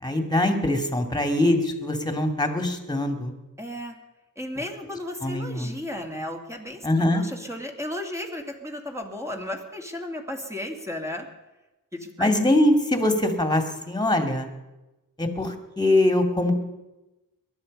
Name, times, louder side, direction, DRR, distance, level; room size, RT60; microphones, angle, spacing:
voice 1, 0.0-3.3 5.2-5.8 6.8-7.2 12.2-14.5 15.2-16.5, left 1 dB, 10° left, 7 dB, 2.5 m, -23 dB
voice 2, 3.6-3.9 4.4-11.3 11.9-12.3, left 1 dB, 10° right, 1 dB, 2.6 m, -34 dB
19.0 x 12.5 x 5.4 m, 1.0 s
wide cardioid pair, 90°, 34 cm